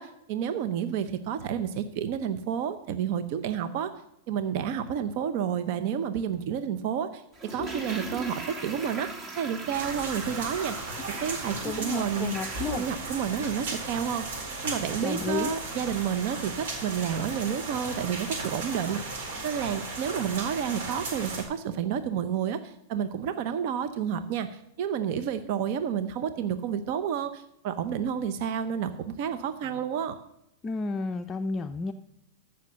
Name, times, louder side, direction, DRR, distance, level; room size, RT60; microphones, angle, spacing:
voice 1, 0.0-3.9 4.3-10.9 11.2-12.4 12.7-14.4 14.6-19.1 19.4-30.2, right 8 dB, 55° right, 10 dB, 0.8 m, -30 dB
Toilet flush, 7.3-14.4 14.7-14.8, right 2 dB, 35° right, 3.0 m, -40 dB
sound 1, 9.7-21.4, right 3 dB, 75° right, 4.2 m, -36 dB
voice 2, 11.6-12.8 15.0-15.5 30.6-31.9, left 4 dB, 20° left, 7 dB, 0.5 m, -32 dB
14.0 x 5.8 x 6.4 m, 0.81 s
hypercardioid pair, 125°, 0 cm